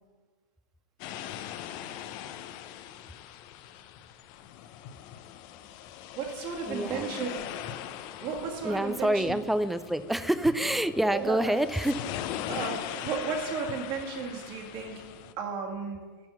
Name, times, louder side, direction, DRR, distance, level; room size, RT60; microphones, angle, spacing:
sound 1, 1.0-15.3, left 11 dB, 45° left, 0.6 m, -40 dB
voice 1, 6.1-7.5 8.2-9.4 11.0-11.5 12.5-15.0 15.4-16.0, right 5 dB, 45° right, 1 dB, 2.0 m, -34 dB
voice 2, 6.7-7.1 8.6-12.0, right 1 dB, ahead, 13 dB, 0.4 m, -27 dB
11.0 x 4.4 x 6.0 m, 1.4 s
hypercardioid pair, 100°, 10 cm